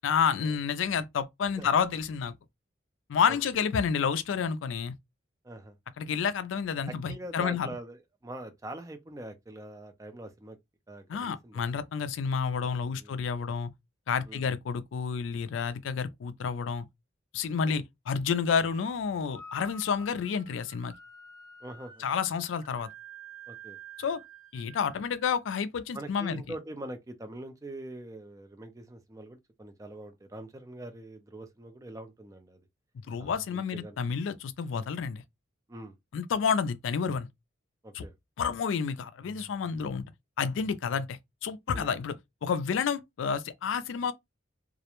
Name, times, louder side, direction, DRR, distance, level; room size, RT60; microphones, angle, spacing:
voice 1, 0.0-2.3 3.1-4.9 6.0-7.7 11.1-13.7 14.1-16.8 17.3-20.9 22.0-22.9 24.0-24.2 24.5-26.4 33.1-35.2 36.1-37.3 37.9-38.0 38.4-40.0 40.4-42.2 42.4-44.1, left 6 dB, 75° left, 0.3 m, -30 dB
voice 2, 5.4-5.8 6.9-10.6 10.9-11.6 12.8-13.2 14.3-14.5 17.6-17.8 21.6-22.0 23.5-23.8 25.9-32.6 33.2-34.0 35.7-36.0 37.8-38.1 41.7-41.9, right 1 dB, 15° right, 0.4 m, -43 dB
sound 1, 18.6-19.0 19.3-25.4, right 3 dB, 55° right, 1.1 m, -50 dB
2.4 x 2.1 x 2.9 m
head